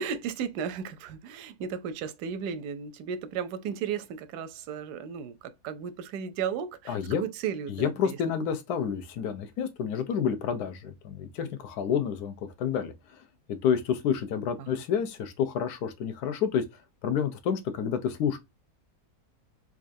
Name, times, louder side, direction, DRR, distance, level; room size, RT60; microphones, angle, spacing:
voice 1, 0.0-8.2 14.6-14.7, right 7 dB, 85° right, 1.1 m, -35 dB
voice 2, 6.9-7.2 7.7-13.2 13.5-16.6 17.0-18.4, left 7 dB, 80° left, 1.3 m, -29 dB
4.4 x 2.4 x 2.6 m
omnidirectional pair, 1.7 m